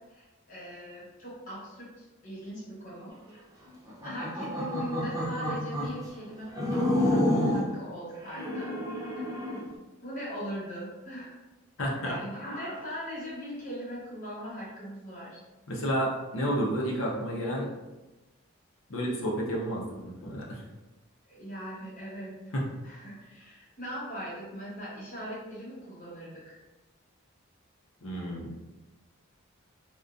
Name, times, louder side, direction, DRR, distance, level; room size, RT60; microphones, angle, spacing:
voice 1, 0.1-3.4 4.0-8.7 10.0-11.4 12.0-15.4 21.3-22.3 22.8-26.6, equal, 40° left, -8 dB, 1.0 m, -40 dB
sound 1, 3.9-6.0 6.5-7.7 8.2-9.7, left 1 dB, 15° right, 0.3 m, -29 dB
voice 2, 11.8-12.2 15.7-17.7 18.9-20.6 22.5-22.6 28.0-28.5, equal, 65° left, -2 dB, 0.6 m, -31 dB
2.5 x 2.2 x 2.4 m, 1.1 s
head